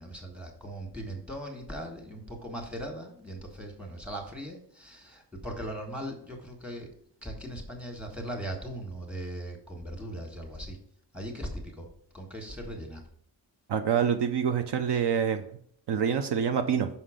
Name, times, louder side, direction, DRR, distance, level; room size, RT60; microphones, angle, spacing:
voice 1, 0.0-6.9 7.2-10.8 11.1-11.9 12.1-13.0, right 1 dB, 5° right, 1 dB, 1.5 m, -39 dB
voice 2, 13.7-15.4 15.9-16.9, right 7 dB, 65° right, 7 dB, 0.7 m, -26 dB
5.7 x 5.7 x 5.0 m, 0.64 s
wide cardioid pair, 140°, 44 cm